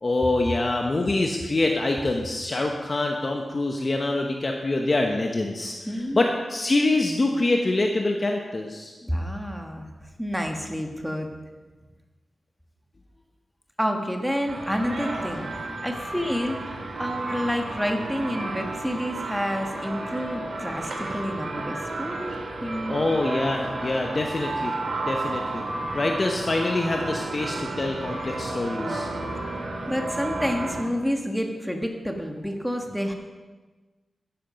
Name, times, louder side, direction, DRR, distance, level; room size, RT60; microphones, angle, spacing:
voice 1, 0.0-8.9 22.9-25.6 25.9-29.1, left 2 dB, 35° left, 2 dB, 1.0 m, -25 dB
voice 2, 5.9-6.3 9.0-9.9 10.2-11.3 13.8-22.3 22.6-23.0 28.9-33.1, equal, ahead, 3 dB, 1.5 m, -29 dB
sound 1, 14.5-30.8, right 2 dB, 60° right, 2.3 m, -32 dB
13.5 x 10.5 x 5.2 m, 1.3 s
wide cardioid pair, 130°, 0 cm